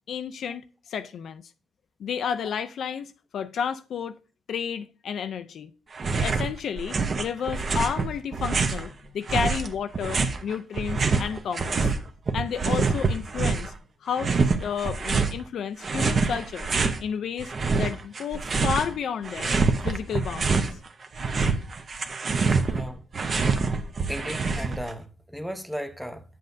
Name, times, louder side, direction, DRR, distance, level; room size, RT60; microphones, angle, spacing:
voice 1, 0.1-1.4 2.0-4.2 4.5-5.7 6.2-11.9 12.3-13.7 14.0-16.7 17.0-19.5 19.8-20.8, left 7 dB, 60° left, 0.4 m, -31 dB
sound 1, 5.9-6.5 6.8-8.9 9.3-12.0 12.3-13.7 14.2-15.4 15.8-17.0 17.4-18.9 19.2-20.7 21.0-24.9, right 4 dB, 35° right, 0.8 m, -25 dB
voice 2, 22.7-23.0 24.1-25.1 25.3-26.2, equal, ahead, 0.7 m, -35 dB
9.4 x 7.6 x 2.6 m
cardioid pair, 130°, 0 cm